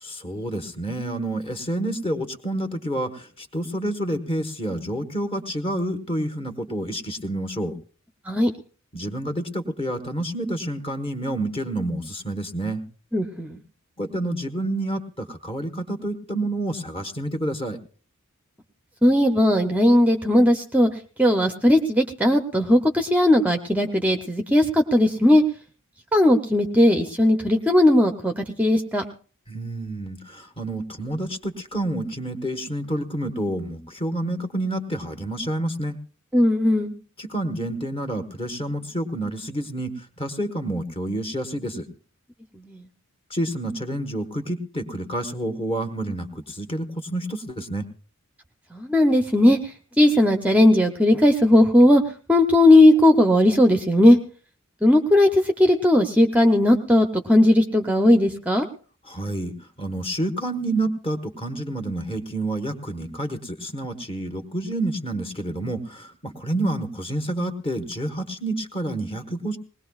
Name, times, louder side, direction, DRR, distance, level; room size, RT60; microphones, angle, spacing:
voice 1, 0.0-7.7 8.9-12.8 14.0-17.8 29.5-36.0 37.2-41.9 43.3-47.9 59.1-69.6, right 1 dB, 25° left, 5 dB, 1.4 m, -29 dB
voice 2, 13.1-13.6 19.0-20.9 21.2-25.4 26.1-29.0 36.3-36.9 42.5-42.9 48.7-52.0 52.3-54.2 54.8-58.7, left 1 dB, 5° right, 5 dB, 0.7 m, -17 dB
20.5 x 19.0 x 2.4 m, 0.39 s
head